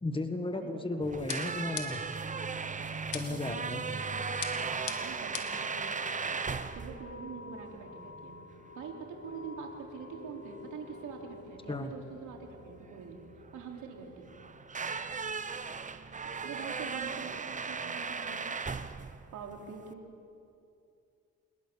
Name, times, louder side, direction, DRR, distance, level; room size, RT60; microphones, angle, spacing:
voice 1, 0.0-2.0 3.1-3.8 11.7-11.9, left 2 dB, 15° left, 7 dB, 1.7 m, -34 dB
voice 2, 0.5-1.3 3.2-4.2 4.5-14.4 16.4-18.6 19.3-20.0, right 6 dB, 80° right, 1 dB, 3.5 m, -45 dB
sound 1, 1.0-19.9, right 5 dB, 25° right, 0.9 m, -38 dB
sound 2, 1.3-2.2 3.1-3.6 4.4-5.7, left 9 dB, 85° left, 2.3 m, -40 dB
sound 3, 3.1-17.2, left 4 dB, 45° left, 2.0 m, -52 dB
27.5 x 21.0 x 7.0 m, 2.6 s
cardioid pair, 90°, 30 cm